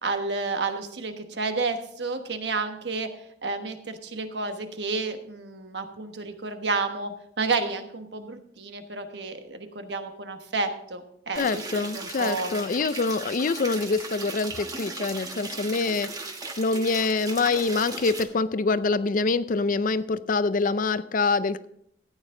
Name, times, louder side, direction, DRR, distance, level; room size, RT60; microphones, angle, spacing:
voice 1, 0.0-3.1 3.4-7.1 7.4-12.5, right 3 dB, 70° right, 1.2 m, -30 dB
voice 2, 11.4-16.1 16.6-21.7, left 3 dB, 50° left, 0.5 m, -25 dB
sound 1, 11.4-18.2, right 3 dB, 20° right, 1.2 m, -37 dB
14.0 x 9.1 x 3.8 m
head